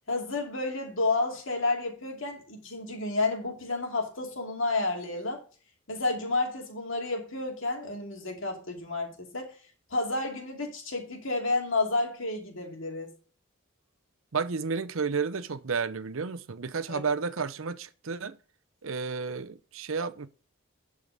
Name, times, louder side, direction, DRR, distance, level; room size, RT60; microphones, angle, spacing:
voice 1, 0.1-5.4 5.9-9.5 9.9-13.1 16.9-17.0, left 2 dB, 60° left, 2.6 m, -30 dB
voice 2, 14.3-18.4 18.8-20.3, right 5 dB, 65° right, 0.7 m, -31 dB
11.0 x 5.0 x 5.2 m
head